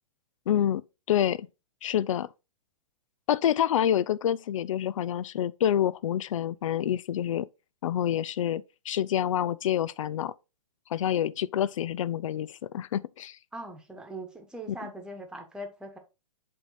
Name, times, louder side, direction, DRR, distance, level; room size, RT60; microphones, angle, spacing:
voice 1, 0.5-0.8 1.1-1.5 1.8-2.3 3.3-7.5 7.8-10.3 10.9-13.4 14.8-14.9, left 10 dB, 65° left, 0.5 m, -27 dB
voice 2, 13.5-16.0, right 1 dB, 5° right, 1.3 m, -41 dB
7.8 x 3.7 x 3.9 m
hypercardioid pair, 125°, 18 cm